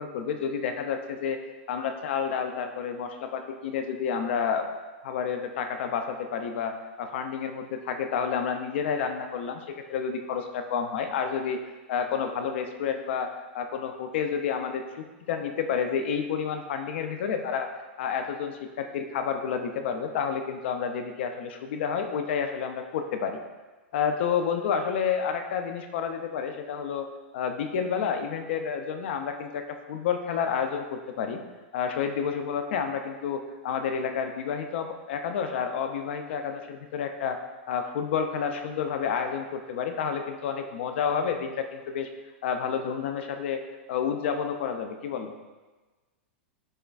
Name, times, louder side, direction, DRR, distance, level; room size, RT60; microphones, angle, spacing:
voice 1, 0.0-1.4 1.7-4.7 5.0-11.6 11.9-17.7 18.0-23.4 23.9-27.1 27.3-31.4 31.7-37.4 37.7-42.1 42.4-43.6 43.9-45.3, left 7 dB, 70° left, 6 dB, 0.4 m, -30 dB
6.4 x 2.3 x 2.3 m, 1.2 s
hypercardioid pair, 135°, 6 cm